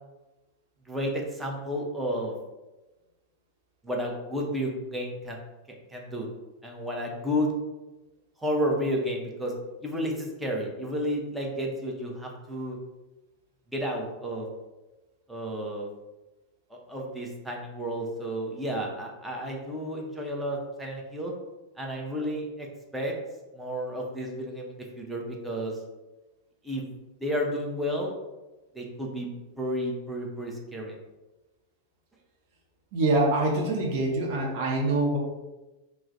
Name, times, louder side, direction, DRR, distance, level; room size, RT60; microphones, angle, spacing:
voice 1, 0.9-2.3 3.8-5.4 5.9-6.3 6.6-7.5 8.4-9.5 9.8-12.8 13.7-14.5 15.3-15.9 16.7-21.3 21.8-22.7 22.9-23.1 23.5-25.8 26.6-26.8 27.2-28.1 28.7-29.3 29.6-30.9, equal, 5° right, -1 dB, 0.6 m, -31 dB
voice 2, 32.9-35.2, right 2 dB, 45° right, -1 dB, 0.7 m, -25 dB
2.4 x 2.0 x 3.8 m, 1.1 s
figure-of-eight pair, 90°, 0 cm